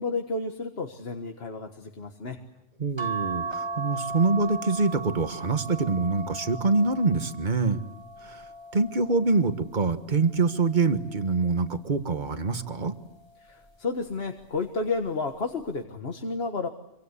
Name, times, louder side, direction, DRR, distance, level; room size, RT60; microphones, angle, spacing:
voice 1, 0.0-2.4 13.4-16.7, left 3 dB, 55° left, 5 dB, 1.7 m, -31 dB
voice 2, 2.8-7.8 8.2-8.4 8.7-12.9, right 3 dB, 40° right, 9 dB, 1.6 m, -25 dB
sound 1, 3.0-9.6 10.2-11.6 12.9-13.3 13.6-13.7, right 3 dB, 20° right, 1.6 m, -37 dB
26.5 x 25.0 x 8.3 m, 0.84 s
omnidirectional pair, 1.3 m